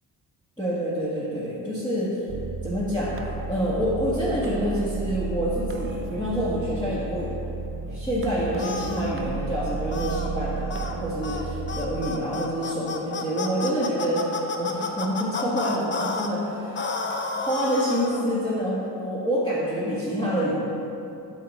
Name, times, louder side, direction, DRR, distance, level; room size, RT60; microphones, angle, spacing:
voice 1, 0.6-2.2 2.6-3.2 3.5-7.3 7.9-16.8 17.1-20.6, equal, 10° left, -10 dB, 1.7 m, -27 dB
sound 1, 2.3-12.1, right 4 dB, 35° right, 0.5 m, -33 dB
sound 2, 8.6-9.1 9.9-10.3 10.7-10.9 11.2-11.4 11.7-16.3 16.7-18.2, left 4 dB, 30° left, 0.7 m, -31 dB
8.5 x 6.2 x 4.2 m, 2.8 s
cardioid pair, 110°, 38 cm